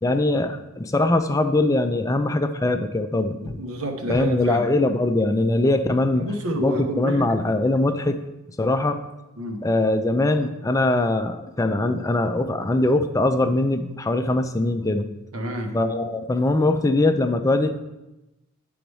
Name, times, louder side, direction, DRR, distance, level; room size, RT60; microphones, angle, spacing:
voice 1, 0.0-3.6 4.1-6.3 6.6-8.2 8.6-9.0 9.6-15.1 15.7-17.8, left 2 dB, 15° left, 8 dB, 0.4 m, -22 dB
voice 2, 3.4-4.6 6.1-7.3 9.4-9.6 15.3-15.8, right 1 dB, 75° right, 3 dB, 1.1 m, -29 dB
10.0 x 3.9 x 4.7 m, 0.98 s
head